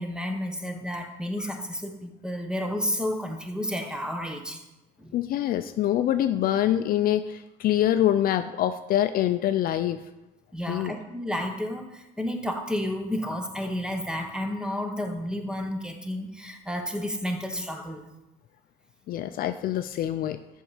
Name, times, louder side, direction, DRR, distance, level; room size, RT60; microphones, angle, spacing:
voice 1, 0.0-4.6 5.0-5.2 10.5-18.1, left 1 dB, 5° right, 4 dB, 1.0 m, -31 dB
voice 2, 5.1-10.0 10.7-10.9 19.1-20.4, left 12 dB, 60° left, 9 dB, 0.4 m, -25 dB
7.7 x 5.4 x 5.0 m, 0.96 s
cardioid pair, 110°, 17 cm